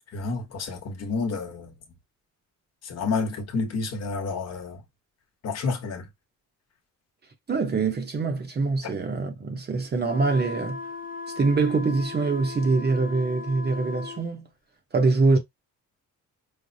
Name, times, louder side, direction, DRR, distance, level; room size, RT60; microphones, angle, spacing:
voice 1, 0.1-1.7 2.8-4.8 5.4-6.1 8.8-8.9, left 4 dB, 50° left, 1.0 m, -30 dB
voice 2, 7.5-10.8 11.4-14.5 14.9-15.4, right 3 dB, 30° right, 0.7 m, -24 dB
sound 1, 10.0-14.3, left 4 dB, 25° left, 0.6 m, -37 dB
4.9 x 2.0 x 2.6 m
cardioid pair, 155°, 32 cm